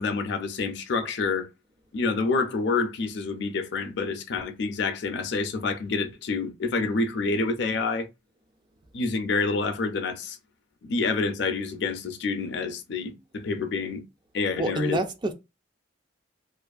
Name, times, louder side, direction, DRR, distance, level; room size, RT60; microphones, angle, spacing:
voice 1, 0.0-1.5 1.9-8.1 8.9-10.4 10.8-14.0 14.3-15.0, left 4 dB, 65° left, 0.4 m, -28 dB
voice 2, 14.6-15.3, right 2 dB, 25° right, 0.3 m, -27 dB
2.5 x 2.3 x 2.3 m
head